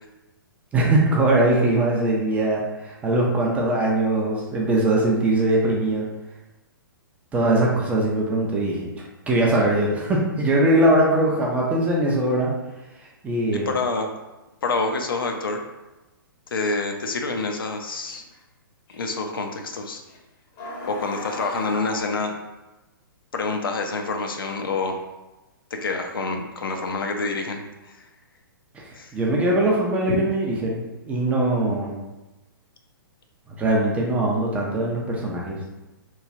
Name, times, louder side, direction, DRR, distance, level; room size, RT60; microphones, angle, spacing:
voice 1, 0.7-6.1 7.3-8.9 9.3-12.5 13.2-13.7 29.1-31.9 33.5-35.6, right 1 dB, 10° right, -3 dB, 0.4 m, -21 dB
voice 2, 13.5-14.1 14.6-15.6 16.5-18.2 18.9-20.0 20.8-22.3 23.3-25.0 25.7-28.1 28.9-29.2 30.1-30.2, left 3 dB, 70° left, 4 dB, 0.4 m, -27 dB
sound 1, 17.1-17.2 18.1-18.4 18.9-19.0 20.1-20.2 20.6-22.0, left 2 dB, 35° left, 0.7 m, -36 dB
3.0 x 2.2 x 2.5 m, 1.1 s
figure-of-eight pair, 120°, 12 cm